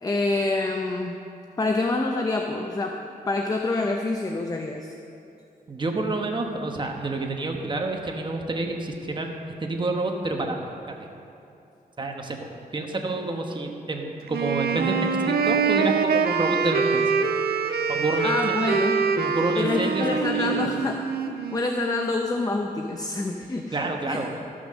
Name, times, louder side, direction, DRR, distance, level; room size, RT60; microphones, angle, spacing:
voice 1, 0.0-1.2 1.6-4.9 18.2-19.0 19.6-21.0 21.5-23.8 24.1-24.2, left 2 dB, 25° left, 3 dB, 0.6 m, -26 dB
voice 2, 5.7-10.6 11.0-11.1 12.0-12.5 12.7-17.1 17.9-18.6 19.2-20.0 20.3-20.6 23.7-24.3, right 2 dB, 30° right, 2 dB, 1.1 m, -28 dB
Wind instrument woodwind instrument, 14.3-22.2, right 5 dB, 80° right, 0.7 m, -25 dB
14.0 x 6.2 x 6.3 m, 2.7 s
wide cardioid pair, 120°, 16 cm